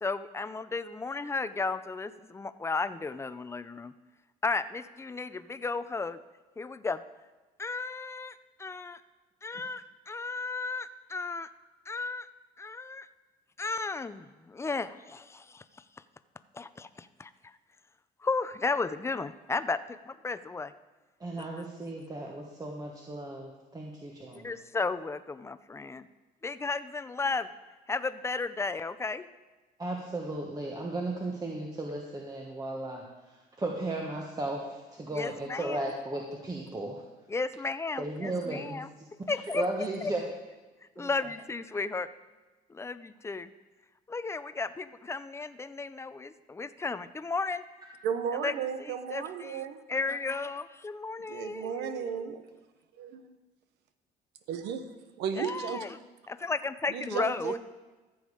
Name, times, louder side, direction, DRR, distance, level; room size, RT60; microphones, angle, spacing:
voice 1, 0.0-3.9 4.4-6.2 6.6-7.0 7.6-9.0 9.4-11.5 11.9-12.3 12.6-13.1 13.6-15.6 16.5-17.3 18.2-20.7 24.3-26.1 26.4-27.5 27.9-29.3 35.1-35.9 37.3-38.9 39.3-39.6 40.0-40.1 41.0-42.1 42.7-43.5 44.1-47.6 48.4-48.5 48.8-49.6 49.9-52.3 55.4-55.9 56.3-57.5, left 4 dB, 15° left, 13 dB, 0.5 m, -34 dB
voice 2, 21.2-24.6 29.8-37.0 38.0-40.2 41.0-41.3, right 2 dB, 20° right, 0 dB, 1.3 m, -35 dB
voice 3, 48.0-49.8 51.3-52.4 53.0-53.1 54.5-54.8 55.2-55.9 56.9-57.6, right 7 dB, 85° right, 9 dB, 1.0 m, -34 dB
14.0 x 7.1 x 4.9 m, 1.2 s
cardioid pair, 110°, 17 cm